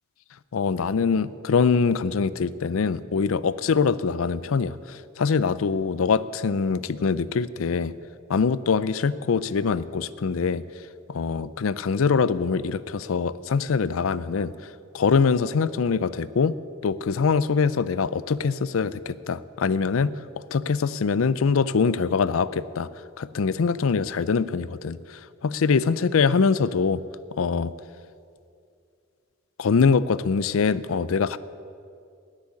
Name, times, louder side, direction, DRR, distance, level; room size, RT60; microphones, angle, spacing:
voice 1, 0.5-7.9 8.3-10.6 11.1-14.5 14.9-16.6 16.8-20.1 20.5-22.9 23.2-27.0 27.4-27.7 29.6-31.4, left 5 dB, 75° left, 17 dB, 0.5 m, -23 dB
10.5 x 9.9 x 9.8 m, 2.4 s
head